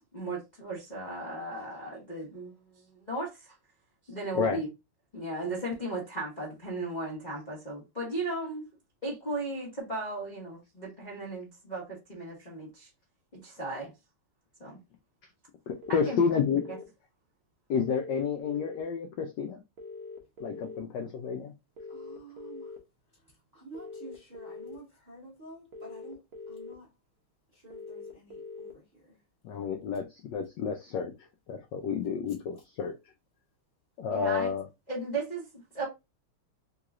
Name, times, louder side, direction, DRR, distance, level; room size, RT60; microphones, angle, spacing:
voice 1, 0.1-3.5 4.1-4.7 5.1-8.7 9.0-12.9 13.3-13.9 14.6-14.8 15.9-16.2 16.5-16.8 34.1-34.5 34.9-35.9, right 2 dB, 35° left, 0.7 m, -36 dB
voice 2, 15.7-16.6 17.7-19.6 20.4-21.5 29.4-33.0 34.0-34.6, left 6 dB, 75° left, 1.0 m, -30 dB
sound 1, 15.8-16.8 17.8-18.8 19.8-20.8 21.8-22.8 23.7-24.8 25.7-26.7 27.7-28.7, left 4 dB, 60° right, 0.9 m, -43 dB
voice 3, 21.9-22.8 23.1-26.9 27.5-29.2, right 2 dB, 30° right, 0.9 m, -50 dB
3.7 x 2.9 x 2.4 m
omnidirectional pair, 2.4 m